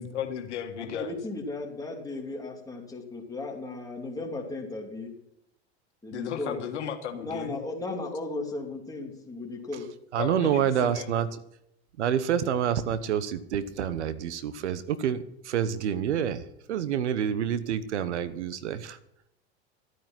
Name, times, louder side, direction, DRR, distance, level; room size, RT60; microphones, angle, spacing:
voice 1, 0.0-1.1 6.1-7.5 10.2-11.1, left 8 dB, 85° left, 6 dB, 1.7 m, -35 dB
voice 2, 0.8-5.1 6.0-6.6 7.2-9.9, left 2 dB, 10° left, 0 dB, 2.8 m, -36 dB
voice 3, 10.1-11.3 12.0-16.4 16.7-19.0, right 9 dB, 85° right, 14 dB, 1.0 m, -27 dB
12.0 x 9.2 x 5.9 m, 0.78 s
hypercardioid pair, 105°, 34 cm